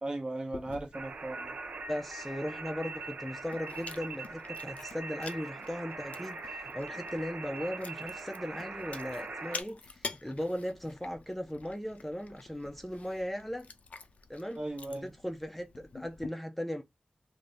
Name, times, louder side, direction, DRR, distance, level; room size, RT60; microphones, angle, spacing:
voice 1, 0.0-1.5 14.6-15.1, right 2 dB, 40° right, 0.8 m, -37 dB
Chewing mastication, 0.5-16.3, left 4 dB, 70° left, 0.4 m, -48 dB
sound 1, 0.9-9.6, right 3 dB, 80° right, 0.4 m, -42 dB
voice 2, 1.9-13.7 14.3-14.6 14.9-16.8, equal, 5° left, 0.5 m, -37 dB
2.6 x 2.6 x 3.2 m
wide cardioid pair, 100°, 2 cm